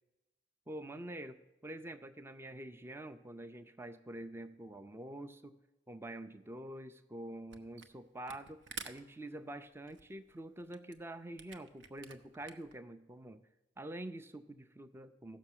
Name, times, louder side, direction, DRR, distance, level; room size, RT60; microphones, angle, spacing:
voice 1, 0.7-1.4 1.6-5.6 5.9-13.4 13.8-15.4, right 1 dB, 15° right, 10 dB, 0.4 m, -46 dB
Camera, 7.5-8.0 8.2-12.8, right 6 dB, 85° right, 0.9 m, -50 dB
15.5 x 6.1 x 7.3 m, 1.1 s
head